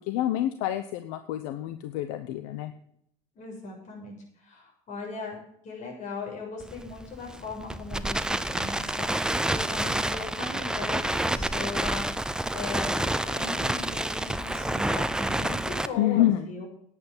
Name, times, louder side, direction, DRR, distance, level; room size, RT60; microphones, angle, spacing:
voice 1, 0.1-2.7 16.0-16.5, left 13 dB, 85° left, 10 dB, 0.9 m, -27 dB
voice 2, 3.4-16.7, left 4 dB, 55° left, 0 dB, 6.8 m, -39 dB
Crackle, 6.6-15.9, right 1 dB, 5° right, 0.8 m, -29 dB
10.5 x 8.5 x 7.4 m, 0.69 s
supercardioid pair, 95°, 15 cm